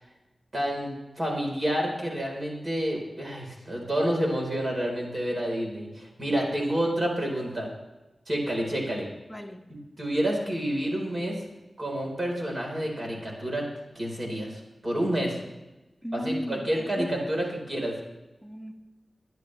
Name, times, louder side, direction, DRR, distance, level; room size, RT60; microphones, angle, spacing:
voice 1, 0.5-7.7 8.3-9.1 10.0-11.4 11.8-13.7 13.9-15.4 16.1-18.0, right 1 dB, 40° right, -1 dB, 4.3 m, -29 dB
voice 2, 9.3-9.6 16.0-17.1 17.4-17.5 18.4-18.7, equal, 5° left, 0 dB, 1.8 m, -35 dB
22.0 x 10.5 x 3.4 m, 1.1 s
wide cardioid pair, 85°, 0 cm